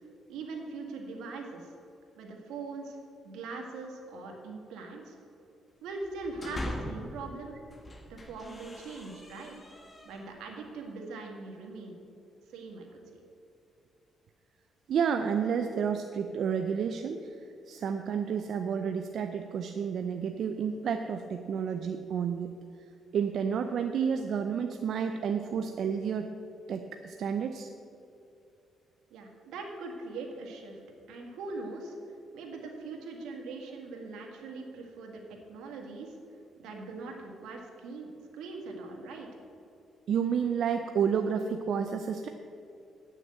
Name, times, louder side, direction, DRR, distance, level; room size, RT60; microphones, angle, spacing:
voice 1, 0.3-1.7 2.2-3.0 3.2-5.2 5.8-7.6 8.1-9.6 10.0-12.0 12.5-13.2 29.1-30.8 31.1-32.0 32.3-35.2 35.5-36.2 36.6-39.3, right 3 dB, 85° right, 1 dB, 1.7 m, -41 dB
sound 1, 6.0-7.1 7.6-10.5, left 1 dB, 25° left, 1.6 m, -42 dB
voice 2, 14.9-17.4 17.7-22.5 23.1-26.3 26.7-27.7 40.1-42.3, right 7 dB, 65° right, 6 dB, 0.5 m, -30 dB
8.8 x 6.4 x 7.7 m, 2.6 s
cardioid pair, 90°, 0 cm